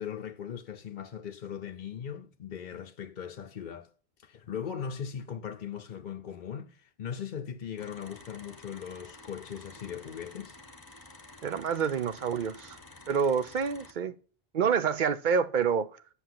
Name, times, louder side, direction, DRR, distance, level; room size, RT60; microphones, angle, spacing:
voice 1, 0.0-3.9 4.2-10.6, left 8 dB, 55° left, 0.8 m, -39 dB
sound 1, 7.8-13.9, left 2 dB, 20° left, 0.9 m, -51 dB
voice 2, 11.4-12.8 13.1-14.2 14.5-15.9, right 6 dB, 55° right, 0.7 m, -27 dB
8.1 x 6.4 x 7.6 m
omnidirectional pair, 1.1 m